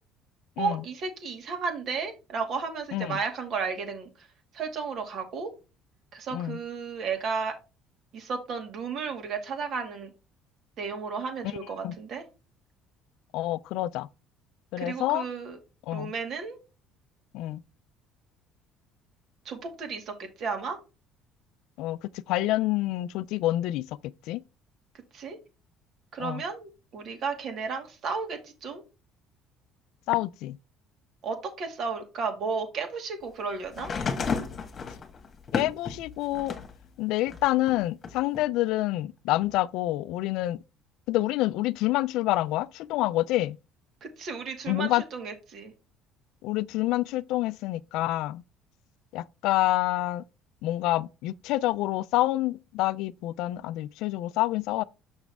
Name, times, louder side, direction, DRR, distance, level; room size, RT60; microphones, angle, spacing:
voice 1, 0.6-4.1 4.5-5.5 6.1-7.5 8.1-10.1 10.8-12.2 14.8-15.6 15.9-16.6 19.5-20.8 25.1-25.4 26.1-28.8 31.2-33.9 44.0-45.7, right 5 dB, 50° right, 2.1 m, -33 dB
voice 2, 13.3-14.1 14.7-15.3 15.8-16.1 17.3-17.6 21.8-23.9 24.3-24.4 26.2-26.4 30.1-30.6 35.5-36.6 37.0-40.6 41.1-43.6 44.7-45.0 46.4-48.4 49.1-50.2 50.6-54.8, left 16 dB, 75° left, 0.3 m, -27 dB
sound 1, 33.7-36.8 37.3-38.4 39.4-39.5, left 5 dB, 35° left, 1.4 m, -33 dB
6.2 x 6.0 x 3.5 m
cardioid pair, 120°, 0 cm